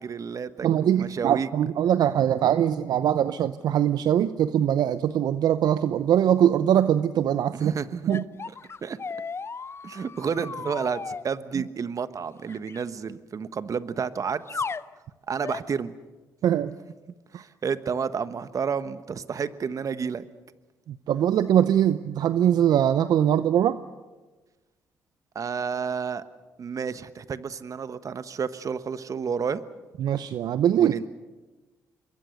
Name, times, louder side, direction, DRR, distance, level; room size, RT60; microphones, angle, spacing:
voice 1, 0.0-1.5 7.5-8.1 8.4-8.5 8.8-9.0 9.8-14.6 15.3-15.9 17.3-20.2 25.3-26.2 26.6-29.6 30.7-31.0, right 6 dB, 50° right, 13 dB, 1.3 m, -30 dB
voice 2, 0.6-7.7 8.1-8.2 16.4-16.7 17.3-17.4 20.9-23.8 30.0-31.1, right 10 dB, 70° right, 13 dB, 0.7 m, -22 dB
sound 1, 8.1-11.2 12.5-12.8 14.5-14.9 15.4-15.7, left 5 dB, 35° left, 0.7 m, -35 dB
26.5 x 22.0 x 6.5 m, 1.2 s
supercardioid pair, 55°, 7 cm